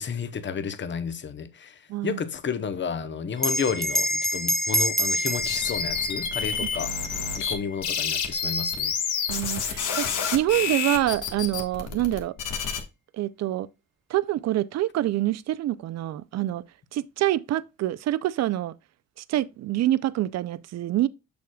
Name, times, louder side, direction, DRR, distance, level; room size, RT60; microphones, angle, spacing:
voice 1, 0.0-1.7 2.0-6.9 7.4-8.9, left 6 dB, 40° left, 0.8 m, -31 dB
voice 2, 1.9-2.2 6.6-6.7 9.3-12.3 13.1-13.7 14.1-16.6 16.9-18.7 19.3-21.1, right 14 dB, 60° right, 0.5 m, -26 dB
Bell, 3.4-8.2, equal, ahead, 0.6 m, -28 dB
sound 1, 5.4-7.5 7.8-12.8, left 6 dB, 80° left, 1.5 m, -28 dB
6.9 x 6.4 x 2.3 m
cardioid pair, 90°, 30 cm